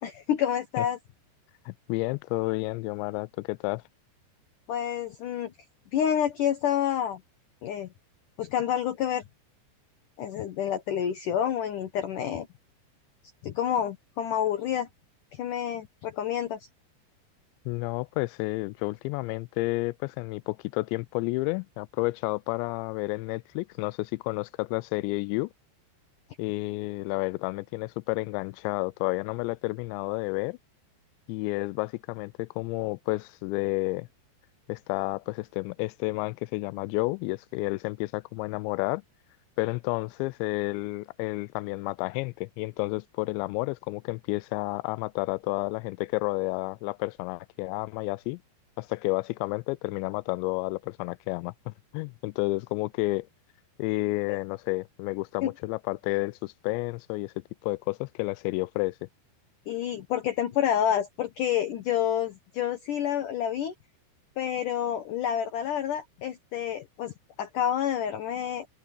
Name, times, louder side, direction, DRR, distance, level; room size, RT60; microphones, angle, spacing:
voice 1, 0.0-1.0 4.7-5.5 5.9-7.2 7.6-7.9 8.4-9.2 10.2-12.5 13.4-14.9 15.3-16.6 54.3-54.4 55.4-55.5 59.7-63.7 64.4-68.7, left 10 dB, 65° left, 2.2 m, -28 dB
voice 2, 1.7-3.8 17.7-25.5 26.4-30.6 31.3-34.1 34.7-39.0 39.6-48.4 48.8-53.3 53.8-57.3 57.6-59.1, left 23 dB, 85° left, 2.8 m, -31 dB
open air
omnidirectional pair, 5.1 m